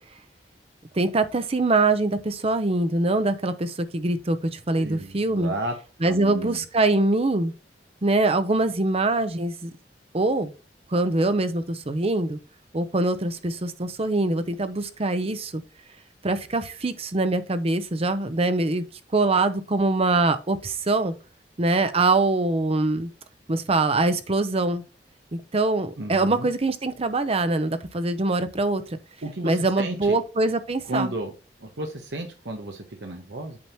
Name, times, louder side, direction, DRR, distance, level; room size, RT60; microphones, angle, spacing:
voice 1, 0.9-5.5 6.0-7.5 8.0-9.7 10.1-10.5 10.9-12.4 12.7-15.6 16.2-18.8 19.1-21.1 21.6-23.1 23.5-24.8 25.3-29.0 29.4-31.1, right 2 dB, 35° right, 0.7 m, -23 dB
voice 2, 4.7-5.7 6.0-6.6 26.0-26.5 29.2-30.2 30.9-31.3 31.6-33.6, right 1 dB, 75° right, 1.1 m, -32 dB
8.6 x 3.0 x 5.7 m
head